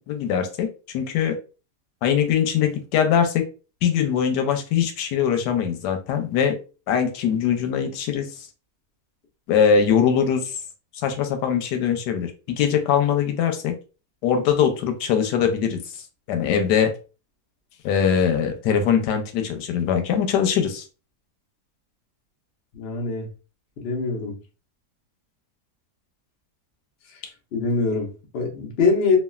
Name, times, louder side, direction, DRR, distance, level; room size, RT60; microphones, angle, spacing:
voice 1, 0.1-0.7 0.9-1.3 2.0-3.4 3.8-6.5 6.9-8.3 9.5-10.5 11.0-13.7 14.2-15.8 16.3-16.9 17.8-20.8, left 7 dB, 90° left, 6 dB, 1.2 m, -21 dB
voice 2, 22.7-23.3 23.8-24.3 27.5-29.2, left 4 dB, 50° left, 1 dB, 0.8 m, -23 dB
3.1 x 2.3 x 2.3 m, 0.34 s
omnidirectional pair, 1.7 m